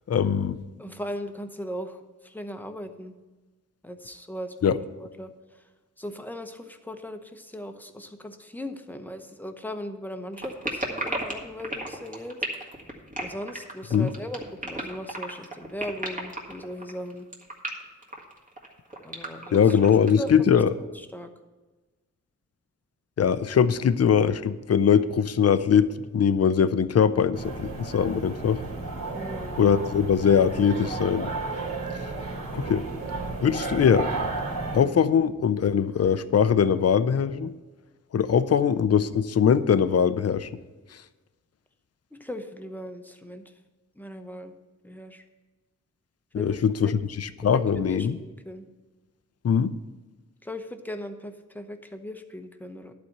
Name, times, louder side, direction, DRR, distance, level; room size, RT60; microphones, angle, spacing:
voice 1, 0.1-0.6 4.6-4.8 13.9-14.1 19.5-20.7 23.2-28.6 29.6-31.3 32.0-32.1 32.5-32.9 33.4-34.1 34.7-37.5 38.1-40.5 46.3-48.2 49.4-49.8, left 7 dB, 50° left, 15 dB, 0.5 m, -21 dB
voice 2, 0.8-3.1 3.8-5.3 6.0-12.4 13.2-17.3 19.0-19.8 20.2-20.3 21.1-21.3 29.1-29.7 42.2-43.4 44.0-44.5 44.8-45.2 46.4-46.6 47.8-48.7 50.4-52.9, equal, 5° left, 7 dB, 0.8 m, -38 dB
sound 1, 10.3-20.3, right 1 dB, 25° right, 1.8 m, -34 dB
sound 2, 27.3-34.8, right 3 dB, 60° right, 2.8 m, -33 dB
11.5 x 4.3 x 7.9 m, 1.2 s
wide cardioid pair, 90°, 32 cm